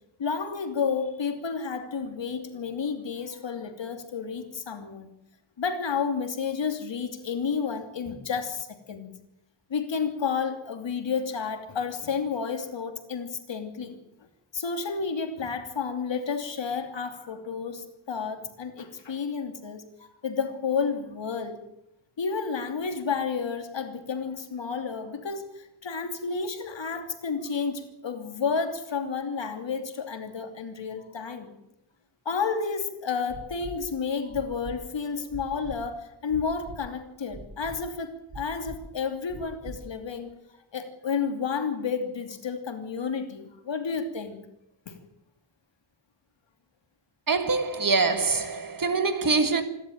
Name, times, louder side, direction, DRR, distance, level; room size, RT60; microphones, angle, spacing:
voice 1, 0.2-5.1 5.6-9.1 9.7-14.0 14.5-21.6 22.2-31.5 32.2-40.3 40.7-44.5 44.9-45.0, left 5 dB, 60° left, 2.9 m, -31 dB
sound 1, 33.3-33.8 34.3-34.8 35.3-35.8 36.3-36.8 37.3-37.8 38.3-38.8 39.3-39.8 40.3-40.4, right 3 dB, 80° right, 6.8 m, -41 dB
voice 2, 47.3-49.6, right 4 dB, 40° right, 1.9 m, -24 dB
27.0 x 12.5 x 9.3 m
wide cardioid pair, 175°, 49 cm